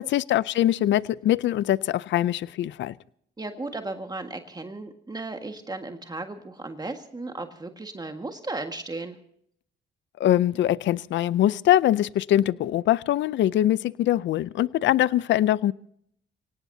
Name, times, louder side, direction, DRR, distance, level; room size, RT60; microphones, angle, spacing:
voice 1, 0.0-2.9 10.2-15.7, left 13 dB, 65° left, 19 dB, 0.5 m, -23 dB
voice 2, 3.4-9.2, right 2 dB, 20° right, 5 dB, 1.7 m, -35 dB
25.0 x 18.0 x 2.8 m, 0.67 s
cardioid pair, 90°, 20 cm